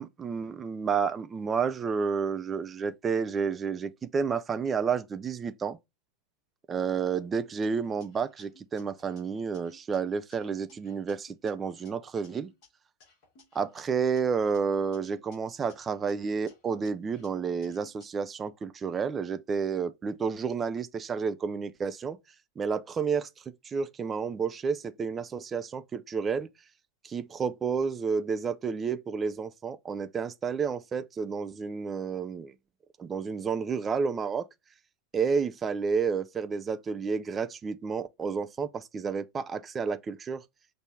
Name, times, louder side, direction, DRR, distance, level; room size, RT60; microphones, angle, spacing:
voice 1, 0.0-5.8 6.7-12.5 13.5-22.2 22.6-26.5 27.0-32.5 33.0-34.5 35.1-40.4, right 5 dB, 20° right, 0.5 m, -30 dB
sound 1, 7.6-10.0 10.3-12.7 13.0-15.4 15.7-18.1, left 2 dB, 40° left, 2.1 m, -60 dB
6.2 x 2.7 x 3.2 m
figure-of-eight pair, 90°, 0 cm